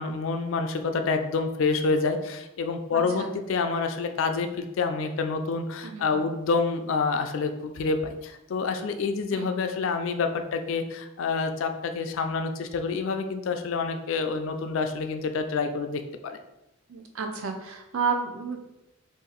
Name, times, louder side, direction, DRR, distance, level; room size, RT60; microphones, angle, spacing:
voice 1, 0.0-16.4, left 4 dB, 65° left, 6 dB, 0.3 m, -28 dB
voice 2, 2.9-3.3 5.8-6.3 9.3-9.5 16.9-18.7, right 5 dB, 75° right, 4 dB, 0.5 m, -31 dB
2.7 x 2.5 x 3.9 m, 0.91 s
head